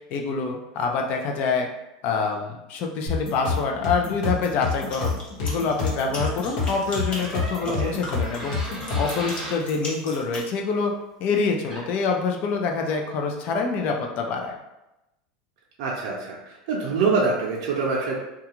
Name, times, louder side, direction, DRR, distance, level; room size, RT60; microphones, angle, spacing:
voice 1, 0.1-1.7 2.0-8.6 9.0-10.9 11.2-14.6, left 4 dB, 50° left, 2 dB, 0.5 m, -26 dB
sound 1, 3.1-9.2, left 4 dB, 70° left, 1.0 m, -28 dB
sound 2, 4.7-10.5, left 1 dB, 30° left, 0.8 m, -38 dB
Door, 7.1-9.6 11.4-11.5 11.7-12.1, equal, 15° right, 0.7 m, -36 dB
voice 2, 7.6-8.0 15.8-18.1, right 4 dB, 65° right, -3 dB, 0.6 m, -25 dB
2.4 x 2.3 x 2.9 m, 0.93 s
supercardioid pair, 125°, 3 cm